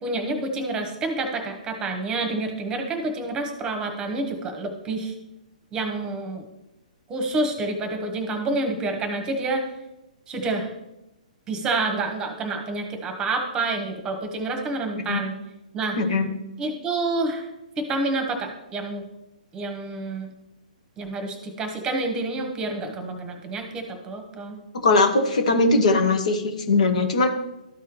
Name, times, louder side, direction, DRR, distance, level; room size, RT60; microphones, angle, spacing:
voice 1, 0.0-5.1 5.7-6.4 7.1-9.7 10.3-10.7 11.5-15.4 15.7-16.0 16.6-17.5 17.8-19.0 19.5-20.3 21.0-24.6, right 2 dB, 20° right, 5 dB, 1.1 m, -28 dB
voice 2, 16.0-16.3 24.8-27.3, left 3 dB, 60° left, 5 dB, 1.1 m, -20 dB
13.0 x 4.8 x 3.0 m, 0.91 s
figure-of-eight pair, 120°, 4 cm